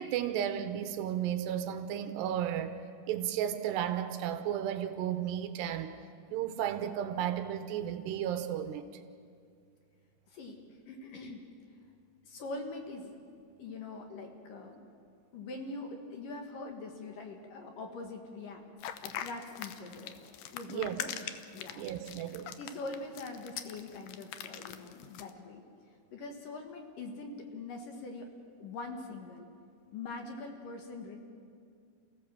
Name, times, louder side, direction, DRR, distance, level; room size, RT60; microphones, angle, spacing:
voice 1, 0.0-2.8 3.1-6.0 6.3-8.9 20.7-21.0 21.8-22.6, right 10 dB, 80° right, 9 dB, 3.0 m, -33 dB
voice 2, 10.3-11.4 12.2-13.1 13.6-14.8 15.3-18.6 19.0-20.2 20.5-21.1 21.5-21.9 22.6-25.6 26.1-28.3 28.6-29.5 29.9-31.2, left 3 dB, 60° left, 3 dB, 2.8 m, -43 dB
sound 1, 18.8-25.3, left 10 dB, 75° left, 2.2 m, -42 dB
29.0 x 16.5 x 7.5 m, 2.3 s
omnidirectional pair, 5.0 m